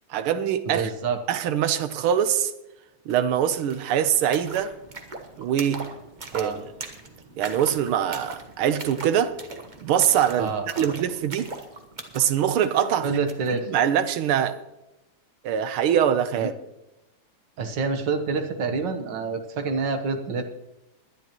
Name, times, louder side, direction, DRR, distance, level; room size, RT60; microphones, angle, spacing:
voice 1, 0.1-0.9 1.3-2.5 3.1-4.7 5.4-5.9 6.3-6.7 7.4-9.4 9.8-11.5 12.1-13.2 13.5-14.6 15.4-16.5, right 9 dB, 80° right, 1.6 m, -23 dB
voice 2, 0.7-1.2 6.3-6.6 10.4-10.9 13.0-13.7 16.4-16.5 17.6-20.4, right 4 dB, 60° right, 1.7 m, -27 dB
sound 1, 3.1-3.2 3.4-13.6, right 3 dB, 30° right, 0.9 m, -41 dB
21.0 x 10.5 x 3.0 m
omnidirectional pair, 2.4 m